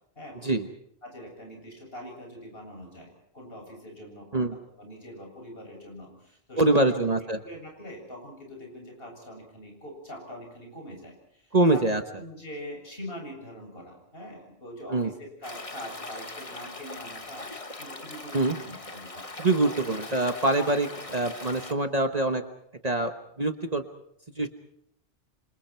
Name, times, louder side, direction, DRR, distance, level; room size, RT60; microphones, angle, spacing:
voice 1, 0.2-0.5 1.0-4.5 4.8-6.9 7.4-11.8 12.1-19.7 20.2-20.3 20.6-20.8, equal, 55° left, 1 dB, 8.0 m, -43 dB
voice 2, 6.6-7.4 11.5-12.0 14.9-15.1 18.3-18.6 19.4-22.4 22.8-23.1 23.4-23.8 24.4-24.5, right 2 dB, 35° right, 6 dB, 1.3 m, -24 dB
Stream, 15.4-21.7, left 2 dB, 30° left, 1.5 m, -41 dB
28.0 x 26.0 x 4.6 m, 0.73 s
omnidirectional pair, 1.1 m